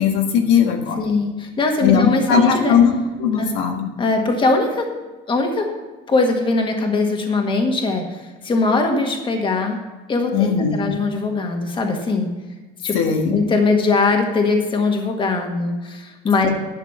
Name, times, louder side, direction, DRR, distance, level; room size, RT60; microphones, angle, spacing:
voice 1, 0.0-1.0 1.8-2.9 3.2-3.9 10.3-10.9 12.9-13.4 16.4-16.5, left 7 dB, 80° left, 3 dB, 1.7 m, -18 dB
voice 2, 1.0-2.8 3.4-3.5 4.0-4.9 5.3-5.7 6.1-9.8 10.1-12.3 12.8-13.0 13.3-16.5, left 3 dB, 25° left, 3 dB, 1.6 m, -20 dB
11.5 x 6.5 x 6.9 m, 1.2 s
cardioid pair, 140°, 21 cm